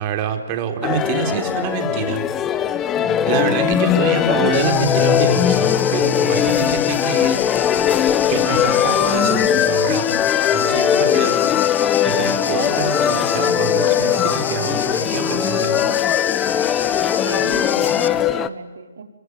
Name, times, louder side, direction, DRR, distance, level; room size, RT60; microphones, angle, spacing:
voice 1, 0.0-2.2 3.0-7.4 8.3-10.1 10.5-11.5 12.0-15.9, right 8 dB, 30° right, 5 dB, 3.8 m, -26 dB
sound 1, 0.8-18.5, left 9 dB, 15° left, 0.9 m, -19 dB
sound 2, 4.5-18.1, left 7 dB, 60° left, 2.0 m, -30 dB
voice 2, 17.1-19.0, right 5 dB, 65° right, 5 dB, 4.3 m, -34 dB
26.0 x 24.0 x 9.6 m, 1.1 s
hypercardioid pair, 150°, 0 cm